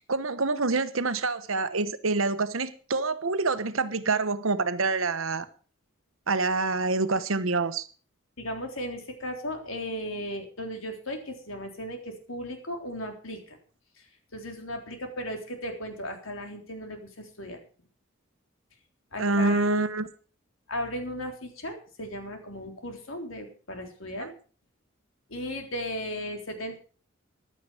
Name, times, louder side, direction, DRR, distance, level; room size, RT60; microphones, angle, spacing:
voice 1, 0.0-5.5 6.3-7.9 19.2-20.1, right 3 dB, 90° right, 1.1 m, -26 dB
voice 2, 8.4-13.6 14.0-14.1 14.3-17.6 19.1-19.7 20.7-24.3 25.3-26.8, equal, 90° left, 3.6 m, -36 dB
15.0 x 11.5 x 4.9 m
head